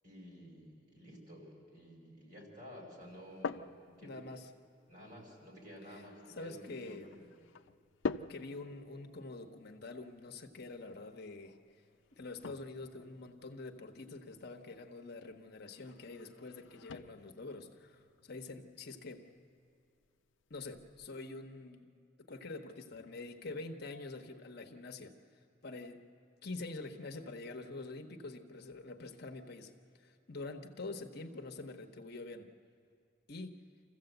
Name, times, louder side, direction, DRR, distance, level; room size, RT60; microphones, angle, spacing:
voice 1, 0.0-3.7 4.0-4.3 4.9-7.3, equal, 45° right, 0 dB, 5.3 m, -52 dB
sound 1, 3.0-21.1, left 4 dB, 85° left, 0.5 m, -48 dB
voice 2, 4.0-4.5 5.9-6.0 6.4-7.2 8.3-11.8 12.1-19.3 20.5-21.9 22.2-25.1 25.6-26.0 26.4-32.5 33.3-33.6, left 3 dB, 60° left, 4 dB, 1.1 m, -46 dB
26.0 x 15.0 x 8.0 m, 2.5 s
head